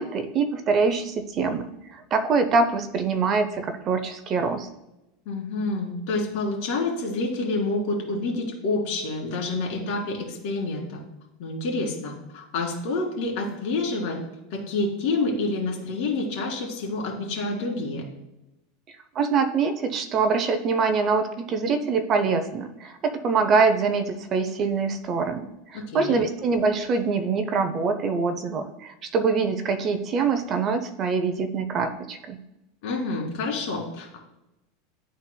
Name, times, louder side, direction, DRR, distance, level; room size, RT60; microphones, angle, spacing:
voice 1, 0.0-4.7 19.1-32.4, right 4 dB, 35° right, 8 dB, 0.6 m, -24 dB
voice 2, 5.3-11.0 11.4-14.2 14.5-18.0 25.7-26.2 32.8-34.2, left 3 dB, 55° left, -1 dB, 2.2 m, -28 dB
11.5 x 4.1 x 2.2 m, 0.91 s
supercardioid pair, 140°, 0 cm